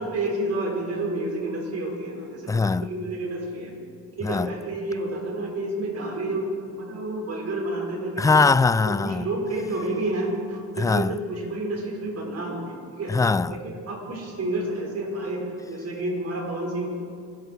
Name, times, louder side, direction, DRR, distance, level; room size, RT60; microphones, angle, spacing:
voice 1, 0.0-3.7 4.2-6.5 6.8-8.4 8.8-13.1 13.5-16.9, right 2 dB, 55° right, 5.1 m, -30 dB
voice 2, 2.5-2.9 4.2-4.5 8.2-9.2 10.8-11.2 13.1-13.6, left 4 dB, 10° left, 0.3 m, -21 dB
25.5 x 12.5 x 4.6 m
cardioid pair, 90°, 30 cm